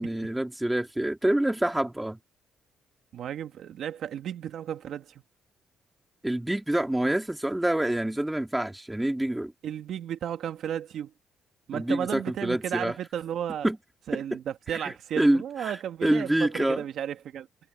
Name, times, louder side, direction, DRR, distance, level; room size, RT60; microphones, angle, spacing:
voice 1, 0.0-2.2 6.2-9.5 11.7-12.9 13.6-13.8 14.1-14.2 14.7-15.4 16.0-16.8, right 1 dB, 10° right, 3.0 m, -26 dB
voice 2, 3.1-5.2 9.6-11.1 11.7-13.7 14.1-17.5, right 10 dB, 70° right, 1.8 m, -34 dB
cardioid pair, 90°, 0 cm